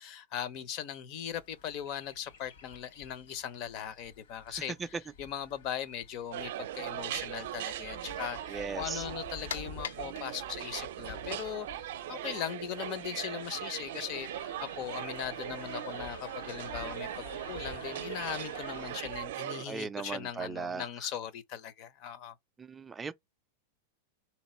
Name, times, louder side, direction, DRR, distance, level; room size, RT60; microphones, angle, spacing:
voice 1, 0.0-17.1 17.5-22.3, left 9 dB, 40° left, 0.6 m, -39 dB
Chirp tweet, 1.3-19.3, left 4 dB, 70° left, 1.4 m, -53 dB
restaurant ambience, 6.3-19.7, right 12 dB, 70° right, 0.5 m, -40 dB
voice 2, 8.5-9.0 19.7-20.8 22.6-23.1, right 5 dB, 10° right, 0.3 m, -38 dB
sound 1, 9.1-18.8, left 8 dB, 90° left, 0.6 m, -49 dB
3.8 x 2.9 x 4.2 m
supercardioid pair, 150°, 0 cm